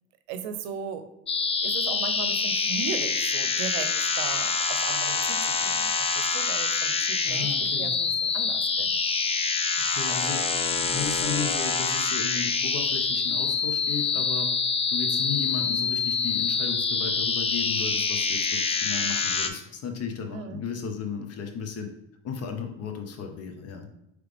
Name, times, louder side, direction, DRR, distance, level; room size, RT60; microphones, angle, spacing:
voice 1, 0.3-1.1 1.6-9.0 20.3-20.6, right 7 dB, 70° right, 9 dB, 0.7 m, -37 dB
sound 1, 1.3-19.5, left 4 dB, 15° left, 0.4 m, -26 dB
voice 2, 7.3-7.9 9.8-14.5 14.9-21.9 22.2-23.9, left 6 dB, 45° left, 5 dB, 1.0 m, -35 dB
4.9 x 3.2 x 3.3 m, 0.85 s
supercardioid pair, 90°, 35 cm